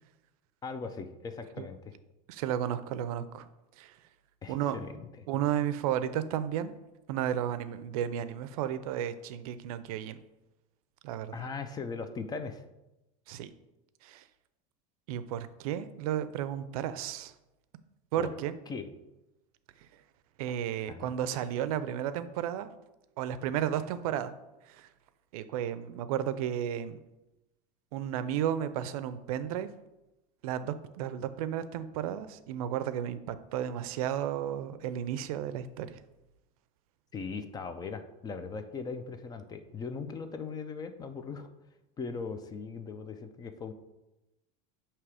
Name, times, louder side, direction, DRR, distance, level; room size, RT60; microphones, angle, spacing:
voice 1, 0.6-2.0 4.4-5.3 11.3-12.6 18.2-18.3 18.7-18.9 20.9-21.1 37.1-41.5 42.0-43.7, left 5 dB, 20° left, 9 dB, 0.5 m, -39 dB
voice 2, 2.3-3.5 3.8-4.0 4.5-4.8 5.3-6.7 7.1-10.2 11.0-11.4 13.3-13.5 14.0-14.2 15.1-17.3 18.1-18.6 20.4-22.7 23.2-24.3 24.7-24.9 25.3-27.0 27.9-29.7 30.4-36.0, right 10 dB, 85° right, 13 dB, 0.5 m, -33 dB
7.2 x 2.9 x 4.8 m, 0.97 s
supercardioid pair, 135°, 18 cm